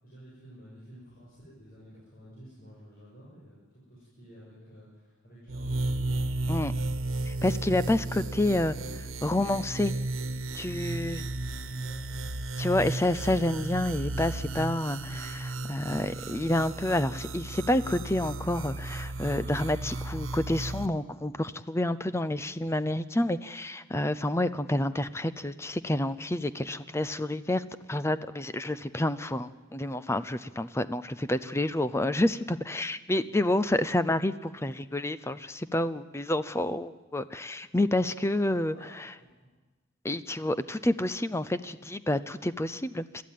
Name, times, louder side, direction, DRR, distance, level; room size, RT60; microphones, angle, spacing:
voice 1, 0.0-7.2 11.6-12.3 33.3-33.4 38.5-39.5, equal, 45° left, -7 dB, 6.7 m, -52 dB
sound 1, 5.5-20.9, right 2 dB, 85° right, 1.3 m, -34 dB
voice 2, 7.3-8.8 9.2-9.9 10.5-11.3 12.6-39.1 40.0-43.2, left 1 dB, 15° left, 14 dB, 0.6 m, -29 dB
22.0 x 13.5 x 9.3 m, 1.2 s
head